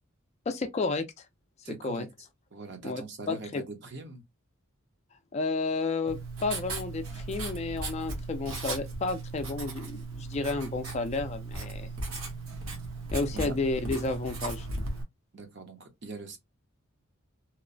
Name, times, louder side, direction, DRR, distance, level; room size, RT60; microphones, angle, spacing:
voice 1, 0.5-1.1 1.8-2.1 2.8-3.0 3.3-3.6 5.3-11.9 13.1-14.7, left 3 dB, 30° left, 0.3 m, -31 dB
voice 2, 1.6-2.1 2.5-4.2 13.3-13.5 15.3-16.4, right 3 dB, 55° right, 0.7 m, -42 dB
Writing, 6.1-15.0, right 3 dB, 75° right, 0.9 m, -37 dB
2.9 x 2.0 x 2.5 m
head